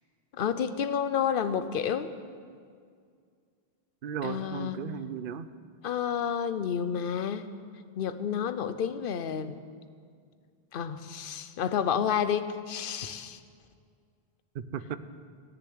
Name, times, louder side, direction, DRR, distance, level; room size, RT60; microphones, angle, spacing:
voice 1, 0.3-2.1 4.2-4.8 5.8-7.5 8.0-9.6 10.7-13.4, left 8 dB, 65° left, 12 dB, 0.9 m, -30 dB
voice 2, 4.0-5.5 14.5-15.0, right 8 dB, 65° right, 12 dB, 0.8 m, -35 dB
17.0 x 6.9 x 9.5 m, 2.1 s
omnidirectional pair, 1.0 m